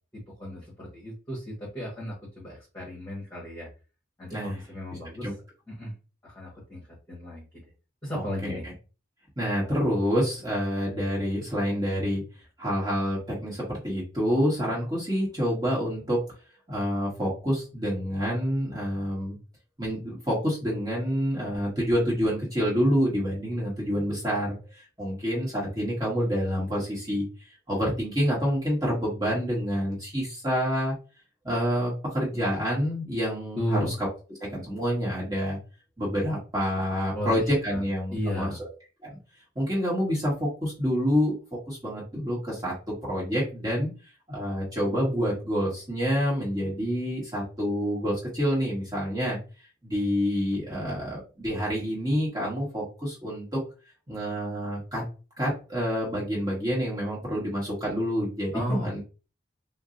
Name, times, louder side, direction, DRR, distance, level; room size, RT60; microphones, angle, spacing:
voice 1, 0.1-3.7 4.2-5.3 5.7-5.9 6.2-7.6 8.0-8.6 33.5-33.9 37.1-37.4 37.7-38.6 58.5-59.0, equal, 15° left, -6 dB, 1.1 m, -34 dB
voice 2, 8.1-8.7 9.4-12.2 12.6-16.2 16.7-19.4 19.8-27.3 27.7-30.9 31.4-33.9 34.5-35.6 36.0-38.7 39.0-39.2 39.5-41.3 41.7-43.9 44.3-49.4 49.8-53.4 54.1-55.0 55.4-59.0, equal, 20° right, -6 dB, 1.2 m, -27 dB
4.3 x 2.0 x 2.5 m, 0.33 s
head